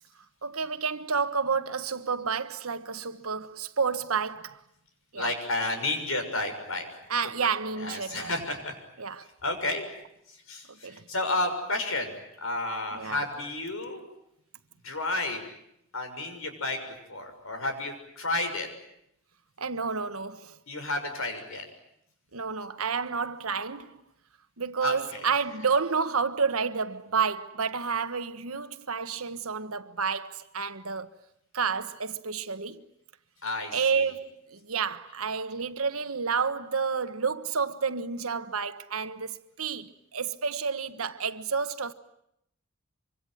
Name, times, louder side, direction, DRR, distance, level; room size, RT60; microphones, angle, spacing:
voice 1, 0.4-4.6 5.1-5.3 7.1-8.3 9.0-9.3 10.8-11.0 12.9-13.2 19.6-20.6 22.3-24.0 24.6-31.1 31.5-32.9 33.7-41.9, right 5 dB, 90° right, 1.4 m, -30 dB
voice 2, 5.2-6.9 7.4-7.5 7.8-8.7 9.4-9.9 10.3-12.1 12.4-14.0 14.8-15.4 15.9-18.7 20.7-21.6 24.8-25.2 33.4-34.0, left 2 dB, 75° left, 6.6 m, -31 dB
25.5 x 25.0 x 9.3 m
head